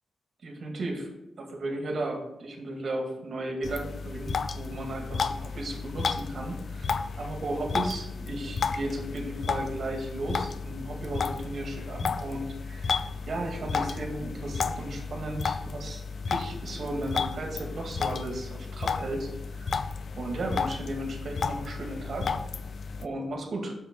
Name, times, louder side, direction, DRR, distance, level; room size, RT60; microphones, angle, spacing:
voice 1, 0.4-1.1 1.4-16.0 16.3-19.8 20.2-22.4 23.0-23.8, right 1 dB, 55° right, 2 dB, 2.1 m, -35 dB
sound 1, 3.6-23.1, left 5 dB, 50° left, 0.5 m, -33 dB
7.0 x 6.7 x 5.3 m, 0.92 s
wide cardioid pair, 140°, 0 cm